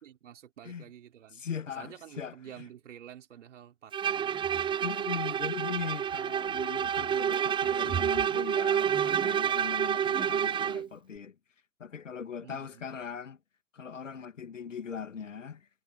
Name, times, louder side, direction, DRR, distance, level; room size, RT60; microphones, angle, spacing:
voice 1, 0.0-1.4 1.8-4.5 12.4-12.8, right 10 dB, 70° right, 3.7 m, -50 dB
voice 2, 1.3-2.7 4.8-11.4 11.8-13.4 13.7-15.7, left 7 dB, 75° left, 2.3 m, -40 dB
Bowed string instrument, 3.9-10.9, right 8 dB, 15° right, 0.5 m, -29 dB
figure-of-eight pair, 85°, 38 cm